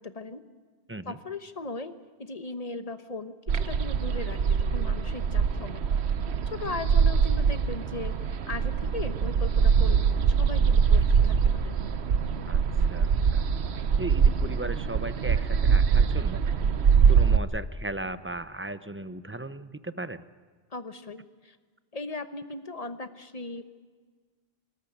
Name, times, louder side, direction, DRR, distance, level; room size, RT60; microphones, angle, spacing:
voice 1, 0.0-0.4 1.0-1.9 2.2-5.9 6.5-11.8 20.7-21.6 21.9-23.7, left 3 dB, 35° left, 10 dB, 1.2 m, -38 dB
sound 1, 3.5-17.4, right 6 dB, 80° right, 1.1 m, -23 dB
voice 2, 12.4-13.4 14.0-16.4 17.1-20.2, right 2 dB, 15° right, 13 dB, 0.6 m, -37 dB
25.5 x 14.0 x 9.9 m, 1.5 s
omnidirectional pair, 1.1 m